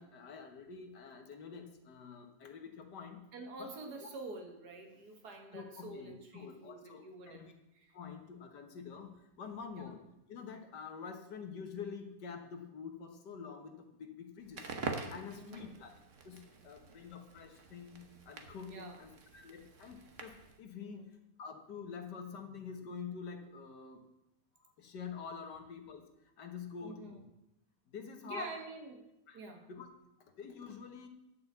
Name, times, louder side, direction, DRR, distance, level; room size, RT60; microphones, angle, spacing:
voice 1, 0.0-3.3 3.6-3.7 4.0-4.1 5.5-7.4 7.9-10.0 10.3-14.7 15.1-15.9 16.2-24.0 24.6-26.1 26.4-27.2 27.9-28.5 29.3-29.4 29.7-29.9 30.2-31.1, left 6 dB, 75° left, 5 dB, 1.8 m, -47 dB
voice 2, 3.3-7.5 7.7-8.0 9.7-9.9 15.4-15.7 16.9-17.0 18.7-19.0 20.8-21.1 26.8-27.2 28.2-29.1 29.3-29.7, right 3 dB, 65° right, 4 dB, 2.0 m, -47 dB
Crackle, 14.4-20.6, right 4 dB, 50° right, 1.3 m, -46 dB
10.5 x 5.5 x 8.1 m, 0.90 s
omnidirectional pair, 1.8 m